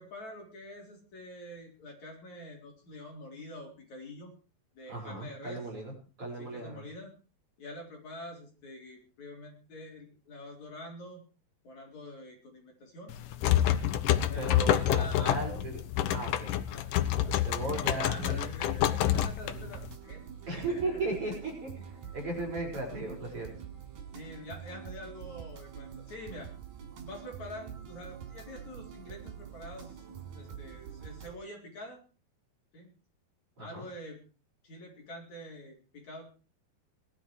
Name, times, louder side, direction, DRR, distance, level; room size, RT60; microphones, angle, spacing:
voice 1, 0.0-4.3 4.8-5.6 6.4-7.1 7.6-11.2 11.6-13.1 13.5-13.8 14.1-15.7 16.6-17.4 17.6-20.2 20.5-21.0 21.3-21.4 24.1-26.5 27.0-30.1 30.4-32.0 32.7-32.9 33.6-34.2 34.6-36.3, left 1 dB, 50° left, 0 dB, 5.2 m, -46 dB
voice 2, 4.9-5.9 6.2-6.8 14.3-15.8 16.1-16.6 17.4-18.5 20.5-21.8 22.1-23.5 33.6-33.9, right 2 dB, 35° right, -1 dB, 6.4 m, -36 dB
sound 1, 13.1-19.9, left 11 dB, 70° left, 2.3 m, -28 dB
sound 2, 19.4-31.3, right 8 dB, 70° right, 4.5 m, -46 dB
20.0 x 11.5 x 4.8 m, 0.36 s
omnidirectional pair, 4.3 m